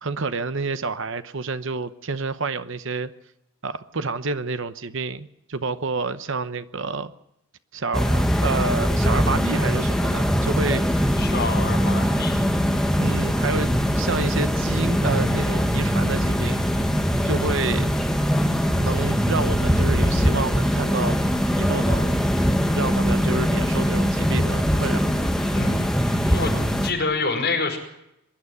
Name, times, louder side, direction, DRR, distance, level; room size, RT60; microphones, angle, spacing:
voice 1, 0.0-3.1 3.6-7.1 7.7-11.2 13.0-16.6 17.2-17.9 18.8-21.2 21.6-22.3 22.7-25.1, right 3 dB, 55° right, 12 dB, 0.9 m, -28 dB
sound 1, 7.9-26.9, equal, ahead, 1.4 m, -22 dB
voice 2, 11.2-12.4 25.5-25.9 26.2-26.6 26.8-27.8, left 3 dB, 45° left, 1 dB, 5.3 m, -26 dB
23.5 x 11.5 x 9.7 m, 0.82 s
head